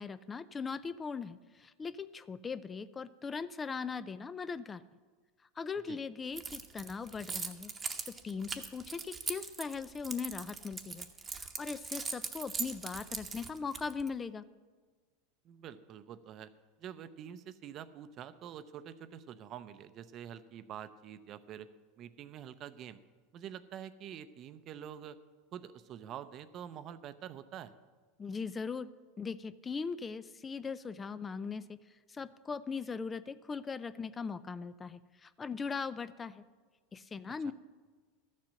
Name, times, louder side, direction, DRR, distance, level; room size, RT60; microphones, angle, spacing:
voice 1, 0.0-4.8 5.6-7.7 8.1-11.1 11.3-14.4 28.2-28.9 29.2-36.4 36.9-37.5, left 5 dB, 20° left, 15 dB, 0.3 m, -39 dB
Keys jangling, 6.4-14.1, right 5 dB, 20° right, 0.9 m, -40 dB
voice 2, 15.4-16.5 16.8-21.7 22.0-23.0 23.3-25.2 25.5-27.8 37.4-37.5, right 9 dB, 40° right, 13 dB, 0.6 m, -46 dB
12.5 x 7.5 x 6.4 m, 1.4 s
supercardioid pair, 120°, 0 cm